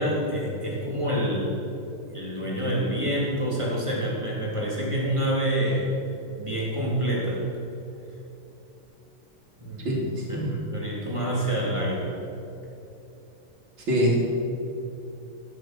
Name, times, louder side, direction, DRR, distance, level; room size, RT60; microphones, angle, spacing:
voice 1, 0.0-1.5 2.0-5.9 6.4-7.4 9.6-12.1, right 1 dB, 15° right, -5 dB, 3.5 m, -27 dB
voice 2, 9.8-10.5 13.9-14.2, equal, 70° right, -3 dB, 3.9 m, -24 dB
16.0 x 11.0 x 6.2 m, 3.0 s
omnidirectional pair, 2.4 m